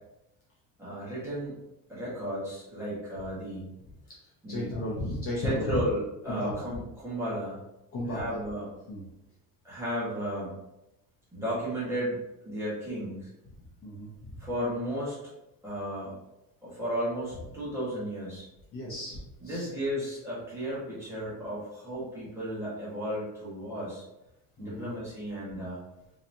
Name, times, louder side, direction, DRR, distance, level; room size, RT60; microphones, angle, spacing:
voice 1, 0.8-1.5 1.9-3.7 4.4-4.7 5.3-7.6 8.1-8.7 9.6-10.6 11.3-12.2 12.4-13.3 14.4-15.2 15.6-16.1 16.6-18.5 19.4-24.0 24.6-25.8, equal, 5° right, -9 dB, 1.3 m, -34 dB
voice 2, 4.5-5.8 6.3-6.5 7.9-8.2 8.9-9.0 13.8-14.4 18.7-19.7 24.6-24.9, left 1 dB, 35° left, -6 dB, 0.9 m, -34 dB
3.9 x 2.9 x 2.6 m, 0.91 s
cardioid pair, 175°, 37 cm